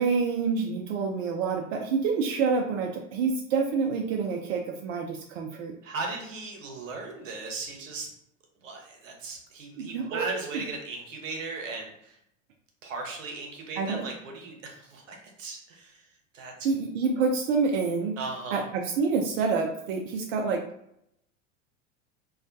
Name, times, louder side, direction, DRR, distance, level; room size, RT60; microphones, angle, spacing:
voice 1, 0.0-5.7 9.8-10.6 13.8-14.0 16.6-18.2 18.5-20.6, right 5 dB, 55° right, 1 dB, 0.4 m, -27 dB
voice 2, 5.8-8.1 8.6-12.2 12.8-16.0 16.3-16.5 18.2-18.7, right 3 dB, 75° right, 1 dB, 0.8 m, -37 dB
2.3 x 2.1 x 2.5 m, 0.77 s
hypercardioid pair, 85°, 39 cm